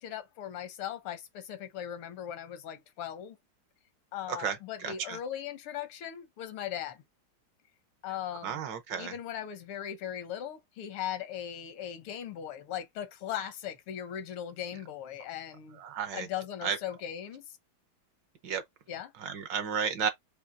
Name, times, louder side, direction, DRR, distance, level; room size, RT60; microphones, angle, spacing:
voice 1, 0.0-3.4 4.1-7.0 8.0-8.6 8.9-15.8 16.1-17.6 18.9-19.1, left 10 dB, 85° left, 1.8 m, -39 dB
voice 2, 4.8-5.2 8.4-9.1 15.8-16.3 16.6-16.8 18.4-18.6 19.2-20.1, right 7 dB, 65° right, 1.4 m, -32 dB
7.0 x 2.8 x 2.6 m
omnidirectional pair, 2.3 m